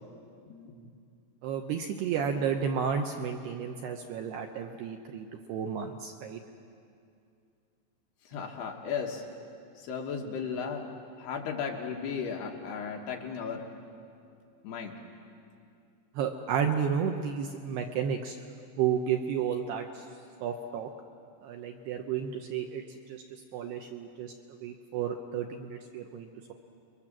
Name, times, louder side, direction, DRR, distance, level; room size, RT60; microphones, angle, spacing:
voice 1, 0.5-0.9 8.3-9.2 9.8-10.9 11.2-13.7 14.6-14.9, left 6 dB, 65° left, 1 dB, 3.1 m, -35 dB
voice 2, 1.4-6.4 16.2-18.4 18.8-20.0 20.4-20.9 21.4-23.2 23.5-24.3 24.6-26.5, right 7 dB, 75° right, 4 dB, 2.5 m, -32 dB
28.0 x 23.0 x 7.5 m, 2.4 s
omnidirectional pair, 5.7 m